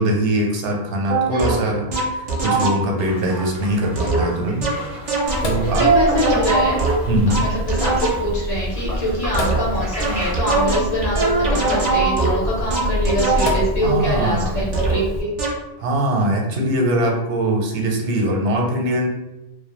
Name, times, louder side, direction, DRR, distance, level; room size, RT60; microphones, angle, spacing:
voice 1, 0.0-4.7 5.4-5.9 7.1-7.4 13.8-14.7 15.8-19.1, right 1 dB, 85° right, 0 dB, 0.9 m, -21 dB
sound 1, 1.1-3.1 4.0-8.4 9.3-13.9 14.7-15.1 15.4-15.7, right 3 dB, 55° right, 0.5 m, -22 dB
voice 2, 1.3-1.8 5.8-6.8 7.3-15.3, equal, 45° left, -6 dB, 0.6 m, -24 dB
sound 2, 3.0-10.3, right 1 dB, 5° right, 0.5 m, -36 dB
Sink (filling or washing), 5.3-15.2, left 1 dB, 75° left, 0.3 m, -26 dB
2.2 x 2.1 x 2.9 m, 0.99 s
omnidirectional pair, 1.2 m